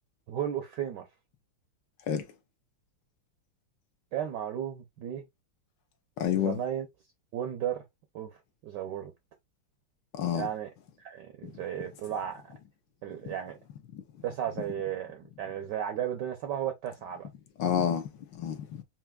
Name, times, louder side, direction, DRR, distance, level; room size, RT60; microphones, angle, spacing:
voice 1, 0.3-1.1 4.1-5.2 6.3-6.9 7.3-7.8 8.1-8.3 8.6-9.1 10.3-10.7 11.0-12.5 13.0-13.6 14.2-17.3, right 10 dB, 70° right, 1.1 m, -34 dB
voice 2, 6.2-6.6 10.1-10.5 13.2-13.3 13.9-14.0 17.6-18.8, left 9 dB, 65° left, 1.2 m, -29 dB
5.7 x 2.5 x 2.2 m
omnidirectional pair, 2.4 m